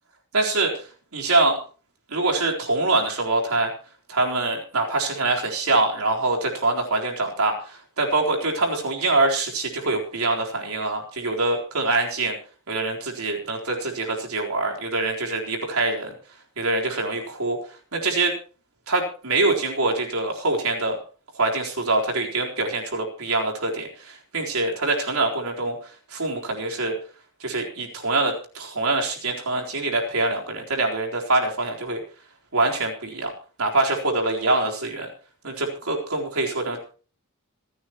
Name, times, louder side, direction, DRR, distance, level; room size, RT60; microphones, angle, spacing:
voice 1, 0.3-0.8 1.1-1.6 2.1-3.7 4.1-12.4 12.7-16.1 16.6-17.6 17.9-18.3 18.9-21.0 21.3-25.8 26.1-26.9 27.4-32.0 32.5-33.3 33.6-35.1 35.4-36.8, right 2 dB, 75° right, 1 dB, 4.0 m, -24 dB
26.5 x 9.6 x 3.0 m, 0.38 s
head